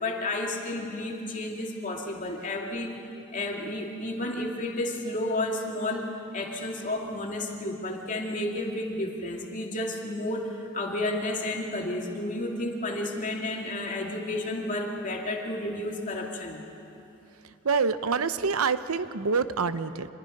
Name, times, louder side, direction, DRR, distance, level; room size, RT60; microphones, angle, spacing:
voice 1, 0.0-3.0 3.3-16.6, left 1 dB, 40° left, 0 dB, 2.4 m, -31 dB
voice 2, 17.6-20.1, right 5 dB, 85° right, 12 dB, 0.8 m, -26 dB
26.5 x 21.0 x 5.4 m, 2.9 s
head